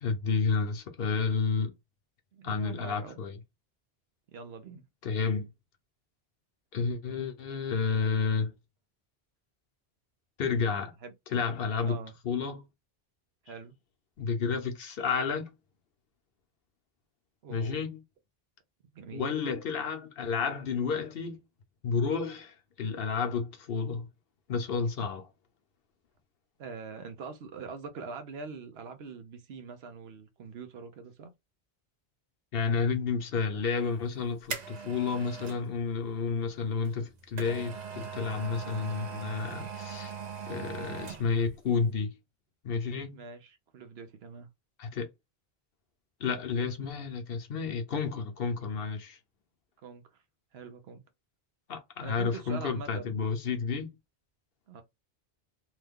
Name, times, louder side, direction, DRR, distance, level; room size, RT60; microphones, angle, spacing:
voice 1, 0.0-1.7 2.4-3.4 5.0-5.5 6.7-8.5 10.4-10.9 11.3-12.6 14.2-15.5 17.5-18.0 19.1-21.4 21.8-24.1 24.5-25.3 32.5-40.1 40.5-42.1 42.6-43.2 44.8-45.1 46.2-49.2 51.7-53.9, left 5 dB, 65° left, 0.9 m, -31 dB
voice 2, 2.3-3.2 4.3-4.9 11.0-11.1 11.8-12.2 13.4-13.8 17.4-17.9 18.8-19.4 26.6-31.3 43.1-44.5 49.8-50.2 50.5-51.0 52.0-53.3 54.7-54.8, right 5 dB, 80° right, 0.9 m, -43 dB
sound 1, 33.9-35.7 36.8-41.5 41.8-41.9, right 6 dB, 50° right, 0.7 m, -40 dB
3.1 x 2.2 x 3.5 m
omnidirectional pair, 1.0 m